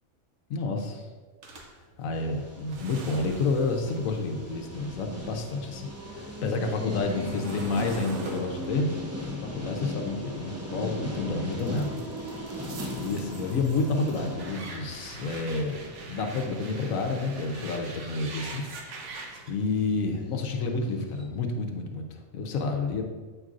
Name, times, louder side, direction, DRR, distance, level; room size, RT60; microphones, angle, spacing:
voice 1, 0.5-1.0 2.0-8.9 9.3-12.0 13.0-15.8 16.1-18.6 19.5-22.1 22.3-23.0, left 3 dB, 70° left, 3 dB, 1.1 m, -29 dB
sound 1, 1.4-5.7 6.0-11.0 11.5-19.5, right 3 dB, 60° right, 1.0 m, -44 dB
sound 2, 2.1-19.5 19.7-20.0 20.4-20.5 20.6-20.8 21.1-21.2, equal, 25° right, 0.3 m, -39 dB
7.8 x 5.3 x 2.5 m, 1.4 s
omnidirectional pair, 1.5 m